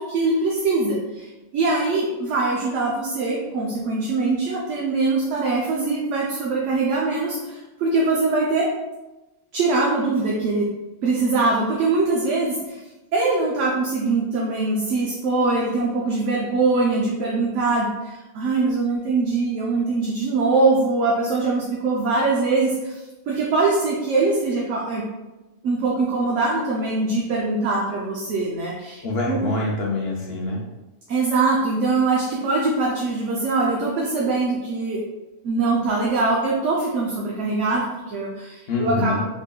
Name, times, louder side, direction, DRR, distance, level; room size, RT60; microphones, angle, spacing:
voice 1, 0.0-8.7 9.5-10.7 11.0-12.8 13.1-25.0 25.6-29.4 31.1-35.0 35.4-39.2, right 3 dB, 70° right, -3 dB, 0.9 m, -22 dB
voice 2, 29.0-30.6 38.7-39.2, left 2 dB, 60° left, -2 dB, 0.8 m, -25 dB
3.6 x 3.6 x 2.3 m, 1.1 s
omnidirectional pair, 1.4 m